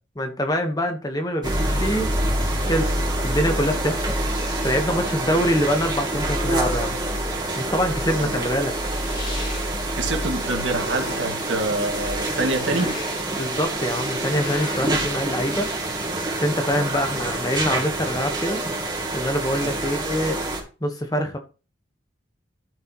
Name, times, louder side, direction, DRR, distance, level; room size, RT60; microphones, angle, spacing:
voice 1, 0.2-2.1 2.7-2.9 3.2-4.2 4.6-6.9 7.6-8.7 13.4-15.7 16.4-18.6 19.1-20.4 20.8-21.4, equal, 20° left, 1.2 m, -24 dB
sound 1, 1.4-20.6, right 1 dB, 20° right, 2.3 m, -26 dB
sound 2, 8.6-9.7 10.4-11.5 12.0-13.3 13.7-15.0, left 3 dB, 45° left, 3.8 m, -38 dB
voice 2, 10.0-13.0 19.6-19.8, right 2 dB, 80° right, 2.0 m, -26 dB
13.0 x 6.6 x 3.1 m
head